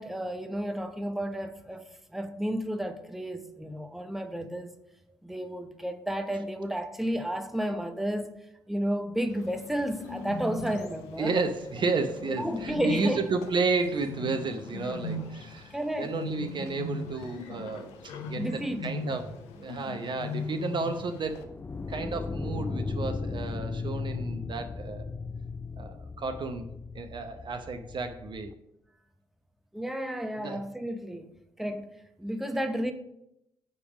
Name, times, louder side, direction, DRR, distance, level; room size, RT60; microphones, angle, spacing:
voice 1, 0.0-4.8 5.2-8.4 8.7-11.4 12.4-13.3 15.7-16.1 18.4-18.9 29.7-31.3 31.6-31.9 32.2-32.9, equal, ahead, 0.8 m, -32 dB
Bird, 9.3-21.4, left 2 dB, 65° left, 0.8 m, -39 dB
voice 2, 11.2-21.5 21.9-25.1 25.8-26.7 26.9-28.5 30.3-30.6, right 3 dB, 40° right, 0.7 m, -32 dB
sound 1, 21.3-28.5, left 4 dB, 20° left, 0.4 m, -36 dB
9.6 x 3.5 x 5.0 m
figure-of-eight pair, 40°, 12 cm